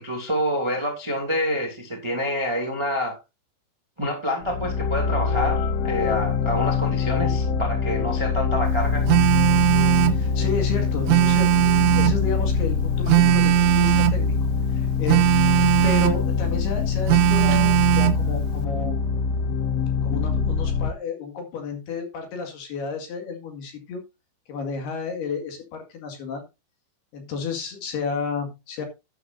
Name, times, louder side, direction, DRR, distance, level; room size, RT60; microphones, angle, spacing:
voice 1, 0.0-3.2 4.0-9.0, equal, 10° right, 1.3 m, -27 dB
sound 1, 4.4-20.9, left 5 dB, 80° left, 3.5 m, -24 dB
Telephone, 9.1-10.2 11.1-12.2 13.1-14.2 15.1-16.2 17.1-18.2, right 14 dB, 80° right, 3.0 m, -18 dB
voice 2, 9.9-11.6 12.0-14.4 14.7-15.2 15.5-19.0 20.0-24.0 24.5-26.4 27.1-28.9, left 5 dB, 60° left, 3.7 m, -32 dB
11.5 x 10.5 x 2.6 m
omnidirectional pair, 5.7 m